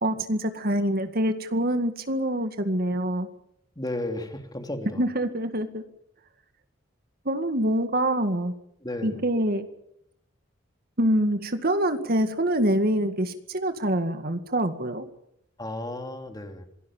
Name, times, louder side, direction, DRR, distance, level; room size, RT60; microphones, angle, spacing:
voice 1, 0.0-3.3 5.0-5.8 7.3-8.5 9.0-9.6 11.0-15.0, right 1 dB, 50° right, 8 dB, 2.0 m, -25 dB
voice 2, 3.8-5.0 8.8-9.2 15.6-16.7, left 1 dB, 20° left, 5 dB, 3.0 m, -33 dB
26.5 x 19.0 x 7.4 m, 0.75 s
head